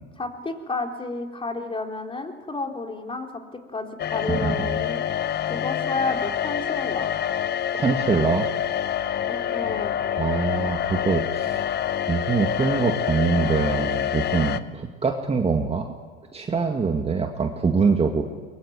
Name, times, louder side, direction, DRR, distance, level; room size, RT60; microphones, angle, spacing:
voice 1, 0.2-3.4 3.7-5.0 5.5-7.1 9.3-10.0, left 3 dB, 15° left, 3 dB, 3.7 m, -31 dB
sound 1, 4.0-14.6, left 10 dB, 35° left, 1.0 m, -26 dB
voice 2, 7.7-8.5 10.2-11.6 12.1-15.9 16.3-18.2, right 5 dB, 20° right, 4 dB, 2.2 m, -24 dB
23.0 x 22.5 x 9.5 m, 1.5 s
hypercardioid pair, 95°, 31 cm